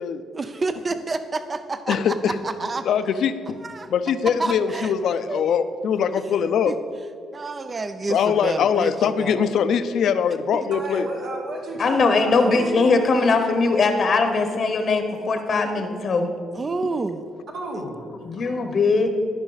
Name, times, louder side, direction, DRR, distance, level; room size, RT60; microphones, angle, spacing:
voice 1, 0.3-2.8 3.6-3.9 4.4-4.9 5.3-5.4 6.7-6.8 7.3-9.6 16.5-17.2, right 3 dB, 30° right, 11 dB, 0.4 m, -29 dB
voice 2, 1.9-2.3 2.9-3.3 3.9-6.7 8.1-11.1 16.8-16.9, left 7 dB, 70° left, 11 dB, 0.5 m, -22 dB
voice 3, 10.7-12.9 17.5-18.0, right 1 dB, 70° right, -1 dB, 1.4 m, -32 dB
voice 4, 11.8-16.3 18.2-19.1, left 3 dB, 50° left, 6 dB, 0.8 m, -20 dB
13.5 x 5.2 x 4.0 m, 2.4 s
cardioid pair, 90°, 0 cm